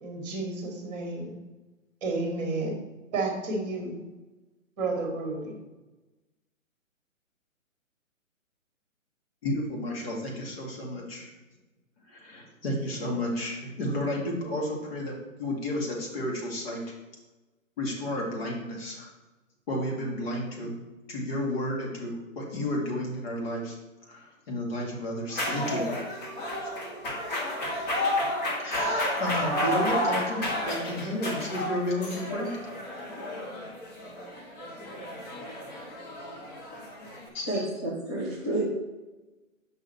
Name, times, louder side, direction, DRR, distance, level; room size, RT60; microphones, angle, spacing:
voice 1, 0.0-1.4 2.0-2.8 3.1-4.0 4.8-5.6, right 3 dB, 30° right, 1 dB, 1.6 m, -31 dB
voice 2, 9.4-11.3 12.1-16.8 17.8-19.1 19.7-20.8 21.1-23.8 24.1-26.0 28.6-32.6 37.3-37.5, left 1 dB, 45° left, -2 dB, 2.3 m, -32 dB
sound 1, 25.3-37.3, left 1 dB, 30° left, 1.6 m, -31 dB
voice 3, 37.5-38.6, right 1 dB, 15° left, -7 dB, 0.4 m, -30 dB
6.8 x 5.5 x 4.3 m, 1.1 s
hypercardioid pair, 145°, 41 cm